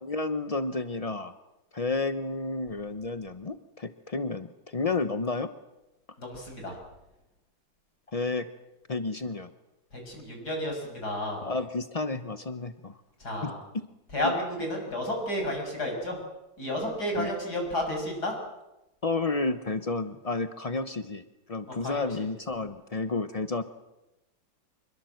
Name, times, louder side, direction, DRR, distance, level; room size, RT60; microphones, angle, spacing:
voice 1, 0.0-1.3 1.7-5.5 8.1-8.5 8.9-9.5 11.4-13.0 13.4-13.8 17.2-17.3 19.0-21.2 21.5-23.6, left 3 dB, 70° left, 10 dB, 0.3 m, -31 dB
voice 2, 6.2-6.8 9.9-11.4 13.2-13.6 14.1-16.2 16.6-18.4 21.8-22.3, left 1 dB, 50° left, 2 dB, 7.3 m, -31 dB
26.5 x 22.5 x 7.9 m, 0.97 s
omnidirectional pair, 2.2 m